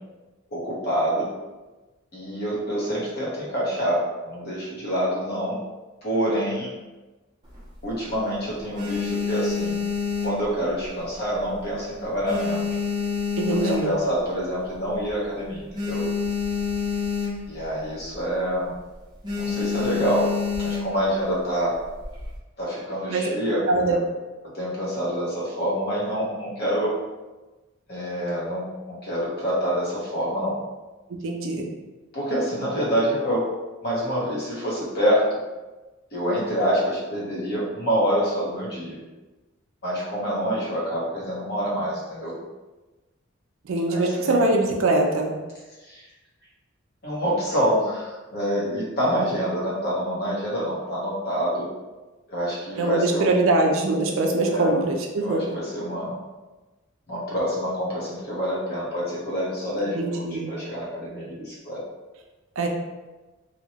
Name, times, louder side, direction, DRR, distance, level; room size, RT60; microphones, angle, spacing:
voice 1, 0.5-1.3 2.1-5.6 6.0-6.7 7.8-9.7 10.2-12.7 13.5-16.1 17.5-18.7 19.4-20.3 20.6-21.7 22.6-24.0 24.5-27.0 27.9-30.6 32.1-33.5 33.8-35.3 36.1-39.0 39.8-42.4 43.9-44.5 45.9-46.0 47.0-51.7 52.3-53.3 54.5-54.8 55.2-56.1 57.1-61.8, equal, 50° left, -5 dB, 0.8 m, -26 dB
sound 1, 7.4-8.2 8.6-11.0 11.3-11.7 12.0-14.2 14.7-14.8 15.0-15.1 15.4-17.6 17.9-18.2 18.5-18.8 19.2-21.1 21.8-22.4, left 6 dB, 20° right, 0.6 m, -28 dB
voice 2, 13.4-13.9 23.1-23.3 23.7-24.0 31.2-31.7 43.7-45.3 52.8-55.6 59.9-60.5 62.6-62.7, right 2 dB, 70° right, 2 dB, 0.4 m, -22 dB
2.8 x 2.2 x 2.8 m, 1.2 s
head